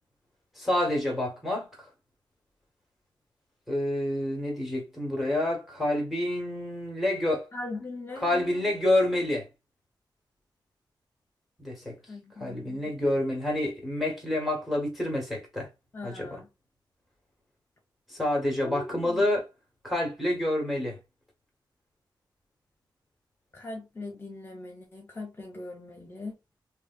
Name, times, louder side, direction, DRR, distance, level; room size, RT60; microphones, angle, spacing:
voice 1, 0.6-1.7 3.7-7.5 8.2-9.5 11.6-12.0 12.4-15.7 16.0-16.3 18.1-19.4 19.8-21.0, left 1 dB, ahead, 1.6 m, -28 dB
voice 2, 7.5-8.7 12.1-12.9 15.9-16.5 18.6-19.3 23.5-26.4, left 2 dB, 30° left, 1.1 m, -40 dB
3.3 x 2.9 x 2.4 m
wide cardioid pair, 130°, 8 cm